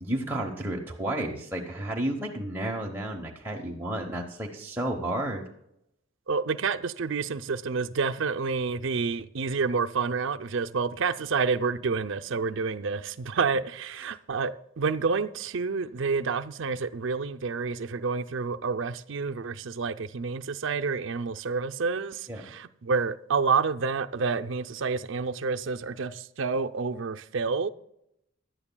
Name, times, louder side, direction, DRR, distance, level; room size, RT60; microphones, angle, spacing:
voice 1, 0.0-5.4 22.3-22.5, right 1 dB, 10° right, 0.9 m, -32 dB
voice 2, 6.3-22.2 22.5-27.7, right 5 dB, 60° right, 0.5 m, -29 dB
16.0 x 11.0 x 2.3 m
head